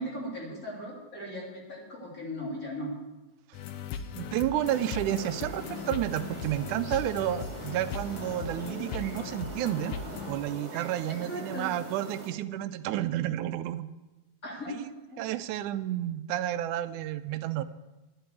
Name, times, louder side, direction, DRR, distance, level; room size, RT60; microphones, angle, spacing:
voice 1, 0.0-2.9 11.1-11.7 14.4-15.2, equal, 25° left, -3 dB, 3.3 m, -38 dB
sound 1, 3.5-10.4, left 6 dB, 70° left, 1.9 m, -38 dB
voice 2, 4.2-10.0 10.3-13.9 14.7-14.9 15.2-17.6, right 12 dB, 90° right, 12 dB, 2.1 m, -31 dB
sound 2, 4.6-12.3, right 3 dB, 25° right, 1.7 m, -43 dB
11.5 x 7.9 x 8.1 m, 1.1 s
omnidirectional pair, 3.5 m